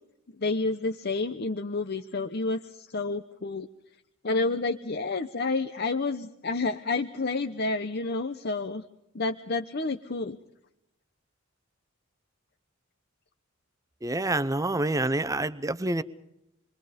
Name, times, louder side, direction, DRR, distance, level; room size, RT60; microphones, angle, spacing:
voice 1, 0.4-3.7 4.2-8.8 9.1-10.4, left 3 dB, 50° left, 0.9 m, -29 dB
voice 2, 14.0-16.0, right 2 dB, 15° right, 0.8 m, -27 dB
28.0 x 23.0 x 5.2 m
head